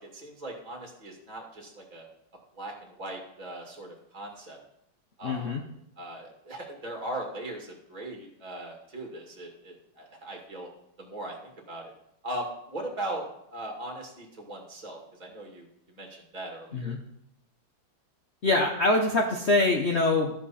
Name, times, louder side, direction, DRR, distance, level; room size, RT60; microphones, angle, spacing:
voice 1, 0.0-2.1 2.5-2.7 3.0-4.6 5.2-5.5 6.0-10.7 11.0-11.8 12.2-13.2 13.5-16.1 16.3-17.0, right 1 dB, 25° right, 1 dB, 2.2 m, -39 dB
voice 2, 5.2-5.6 16.7-17.0 18.4-20.3, left 2 dB, 45° left, 1 dB, 1.1 m, -24 dB
13.0 x 7.9 x 4.3 m, 0.77 s
omnidirectional pair, 1.9 m